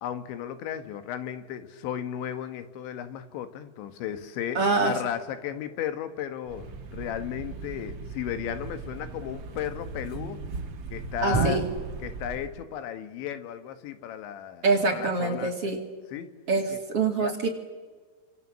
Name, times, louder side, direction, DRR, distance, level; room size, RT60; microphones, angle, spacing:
voice 1, 0.0-10.4 10.9-11.6 12.0-15.8 16.1-16.3 16.7-16.8 17.2-17.3, left 10 dB, 85° left, 10 dB, 3.8 m, -35 dB
voice 2, 4.5-4.9 11.2-11.6 14.6-15.8 16.5-17.5, right 3 dB, 40° right, 2 dB, 2.7 m, -25 dB
Thump thud, 6.4-12.7, right 4 dB, 90° right, 1.2 m, -35 dB
29.0 x 25.5 x 7.4 m, 1.5 s
omnidirectional pair, 5.1 m